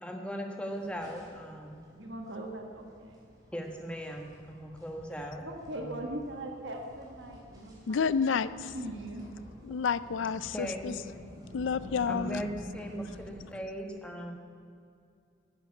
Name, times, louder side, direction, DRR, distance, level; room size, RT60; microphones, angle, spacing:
voice 1, 0.0-1.8 3.5-5.5 5.7-6.0 10.5-11.0 12.0-14.3, equal, 5° left, 2 dB, 1.4 m, -38 dB
sound 1, 0.7-13.5, left 1 dB, 20° right, 3.2 m, -50 dB
voice 2, 1.9-3.2 5.4-8.4 8.7-9.2, right 1 dB, 65° right, 2 dB, 1.6 m, -40 dB
voice 3, 7.9-8.5 9.6-10.9 11.5-12.4, left 6 dB, 80° left, 16 dB, 0.4 m, -29 dB
11.5 x 10.5 x 8.3 m, 2.3 s
head